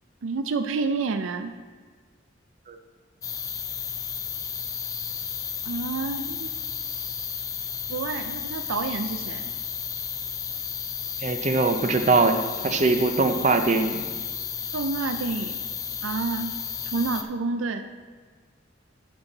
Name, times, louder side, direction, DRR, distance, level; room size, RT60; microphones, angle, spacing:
voice 1, 0.2-1.5 5.6-6.5 7.9-9.5 14.7-15.6 16.0-16.5 16.9-17.9, right 4 dB, 90° right, 9 dB, 0.4 m, -29 dB
sound 1, 3.2-17.2, left 7 dB, 20° left, 0.4 m, -33 dB
voice 2, 11.2-14.0, right 3 dB, 40° right, 7 dB, 0.5 m, -22 dB
11.5 x 5.6 x 3.9 m, 1.5 s
head